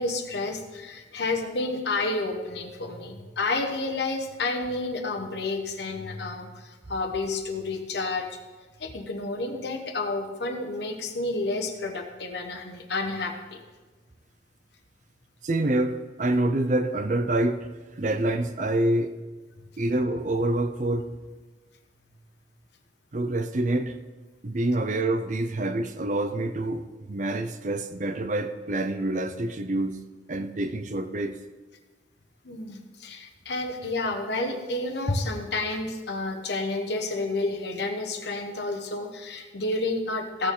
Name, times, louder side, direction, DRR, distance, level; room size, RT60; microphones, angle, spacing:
voice 1, 0.0-8.3 8.8-13.6 32.4-40.5, left 2 dB, 65° left, 3 dB, 1.2 m, -30 dB
voice 2, 15.4-17.7 18.0-19.1 19.8-21.1 23.1-24.0 24.4-30.0 30.3-31.4, right 1 dB, 40° right, 9 dB, 0.5 m, -26 dB
15.5 x 6.7 x 3.8 m, 1.3 s
head